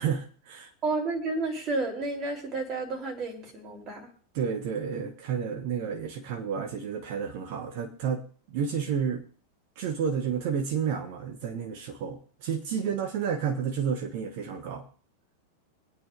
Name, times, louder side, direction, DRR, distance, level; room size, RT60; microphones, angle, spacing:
voice 1, 0.0-0.7 4.3-9.2 9.8-14.8, right 7 dB, 50° right, 6 dB, 1.1 m, -31 dB
voice 2, 0.8-4.1, right 3 dB, 35° right, 2 dB, 3.4 m, -31 dB
25.5 x 8.9 x 2.5 m, 0.42 s
figure-of-eight pair, 90°, 0 cm